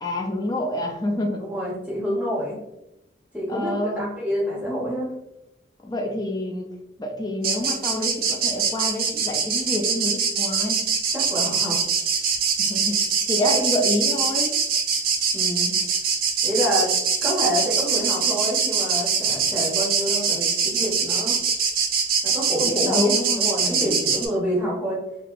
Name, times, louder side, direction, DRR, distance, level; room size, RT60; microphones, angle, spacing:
voice 1, 0.0-1.4 3.5-4.1 5.8-6.7 7.0-10.9 12.6-13.0 13.3-14.6 22.6-24.0, left 1 dB, 20° left, 2 dB, 0.4 m, -27 dB
voice 2, 1.4-2.6 3.3-5.1 11.1-11.8 15.3-15.7 16.4-16.9 17.2-21.3 22.2-25.0, equal, 10° right, -6 dB, 0.8 m, -27 dB
sound 1, 7.4-24.3, right 6 dB, 50° right, 0.5 m, -23 dB
3.5 x 2.7 x 2.4 m, 0.89 s
head